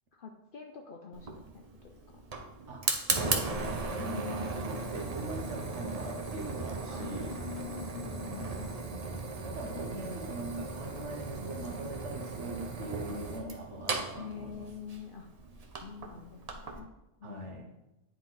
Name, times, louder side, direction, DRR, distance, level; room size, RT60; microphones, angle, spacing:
voice 1, 0.1-2.2 3.9-5.0 6.9-9.2 14.0-15.3 15.8-16.9 17.2-17.8, left 6 dB, 55° left, 2 dB, 0.7 m, -45 dB
Fire, 1.1-16.8, right 3 dB, 35° right, 0.8 m, -37 dB
voice 2, 2.7-7.3 8.1-8.6 9.5-14.6 17.2-17.7, right 2 dB, 75° right, 2 dB, 1.6 m, -41 dB
9.8 x 4.5 x 3.9 m, 0.94 s
omnidirectional pair, 1.2 m